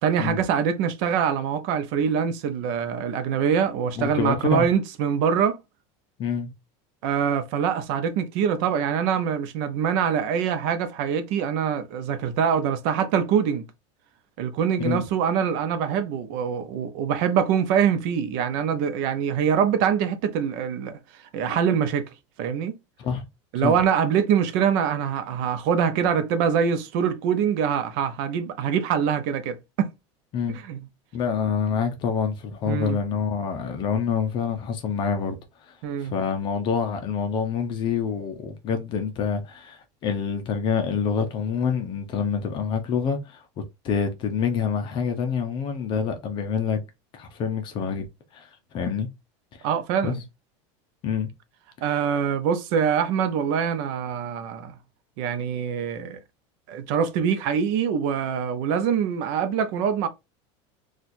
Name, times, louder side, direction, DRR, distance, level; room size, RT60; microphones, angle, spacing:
voice 1, 0.0-5.6 7.0-13.6 14.4-21.0 21.3-22.1 22.4-22.7 23.5-29.9 30.7-30.8 32.7-33.0 35.8-36.1 49.6-50.2 51.8-54.8 55.2-56.2 56.7-60.1, right 7 dB, 55° right, 0.6 m, -24 dB
voice 2, 4.0-4.7 6.2-6.5 14.8-15.0 23.0-23.3 23.6-23.8 30.3-30.6 31.1-46.8 47.1-48.1 48.3-49.1 49.6-49.7 50.0-50.2 51.0-51.3, left 6 dB, 30° left, 0.6 m, -27 dB
4.2 x 2.4 x 2.5 m
supercardioid pair, 160°, 15 cm